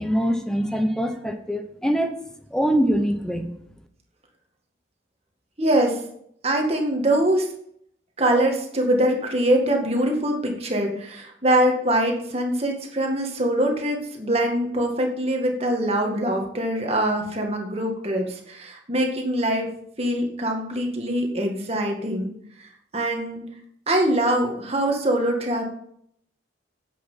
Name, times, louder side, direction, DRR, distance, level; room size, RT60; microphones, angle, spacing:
voice 1, 0.0-2.1 2.5-3.5, equal, 5° left, 6 dB, 0.9 m, -23 dB
voice 2, 5.6-6.0 6.4-7.5 8.2-19.7 20.0-22.3 22.6-23.4 23.9-25.6, right 1 dB, 35° right, 2 dB, 1.9 m, -23 dB
10.0 x 8.0 x 5.7 m, 0.69 s
head